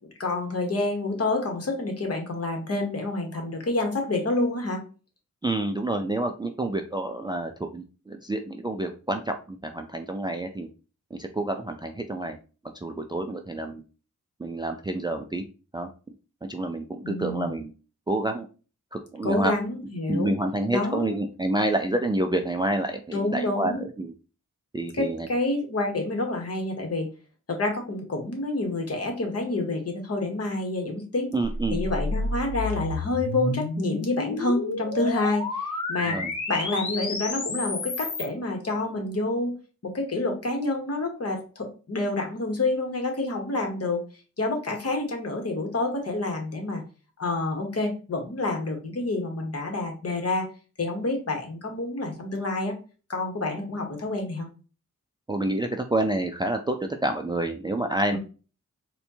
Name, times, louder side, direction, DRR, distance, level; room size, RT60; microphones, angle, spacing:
voice 1, 0.2-4.8 17.0-17.5 19.2-20.3 20.7-21.1 23.1-23.8 24.9-27.1 27.5-31.3 31.7-36.2 36.5-39.5 39.8-44.0 44.4-46.8 47.2-50.5 50.8-52.7 53.1-54.5 58.1-58.2, left 2 dB, 50° left, 2 dB, 1.1 m, -28 dB
voice 2, 5.4-10.7 11.1-12.4 12.8-13.8 14.4-15.4 15.7-15.9 16.4-17.7 18.1-18.5 18.9-19.5 20.1-24.1 24.7-25.3 31.3-31.8 36.1-36.3 55.3-58.2, right 1 dB, 15° right, 5 dB, 0.3 m, -28 dB
sound 1, 31.4-38.3, left 3 dB, 70° left, 0.9 m, -30 dB
4.2 x 2.2 x 2.7 m, 0.35 s
wide cardioid pair, 80°, 31 cm